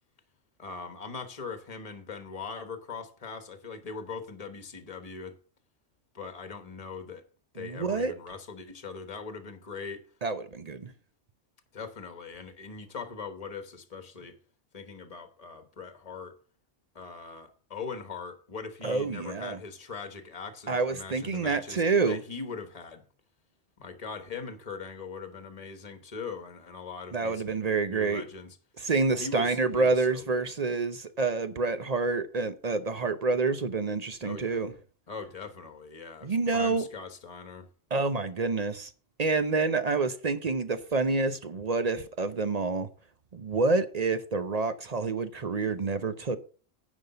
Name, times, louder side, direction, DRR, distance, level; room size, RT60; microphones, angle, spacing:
voice 1, 0.6-5.4 6.1-7.2 7.5-10.0 11.7-14.3 14.7-16.4 16.9-23.0 23.8-27.4 27.8-28.6 29.2-30.5 34.2-34.6 35.1-37.7, left 5 dB, 30° left, 1.3 m, -41 dB
voice 2, 7.6-8.1 10.2-10.9 18.8-19.6 20.7-22.2 27.1-28.2 28.8-34.7 36.2-36.8 37.9-38.9 39.2-42.9 43.3-46.4, right 3 dB, 40° right, 0.6 m, -28 dB
9.9 x 5.3 x 6.7 m
omnidirectional pair, 1.3 m